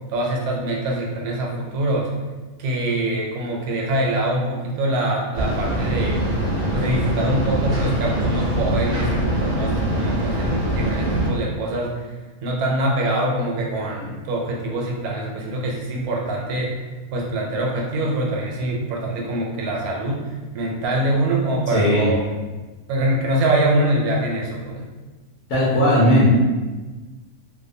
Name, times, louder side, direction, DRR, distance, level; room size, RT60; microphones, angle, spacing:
voice 1, 0.1-2.1 2.6-6.2 6.7-11.9 12.4-16.7 17.1-20.2 20.5-22.2 22.9-24.8, right 1 dB, 80° right, -1 dB, 1.1 m, -24 dB
sound 1, 5.3-11.3, right 1 dB, 55° right, 0.7 m, -23 dB
voice 2, 21.7-22.1 25.5-26.3, equal, 70° left, -8 dB, 1.1 m, -17 dB
2.7 x 2.1 x 2.6 m, 1.3 s
omnidirectional pair, 1.5 m